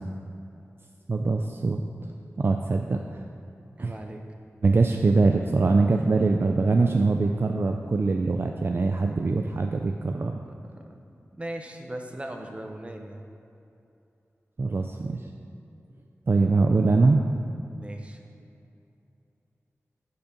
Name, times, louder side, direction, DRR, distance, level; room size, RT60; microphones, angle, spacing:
voice 1, 1.1-1.8 2.4-3.3 3.8-3.9 4.6-10.4 14.6-15.3 16.3-17.2, right 3 dB, 45° right, 4 dB, 0.4 m, -23 dB
voice 2, 3.7-4.2 10.1-11.1 11.4-13.2 17.7-18.2, right 1 dB, 25° right, 3 dB, 0.8 m, -39 dB
8.4 x 4.4 x 5.1 m, 2.7 s
cardioid pair, 55°, 5 cm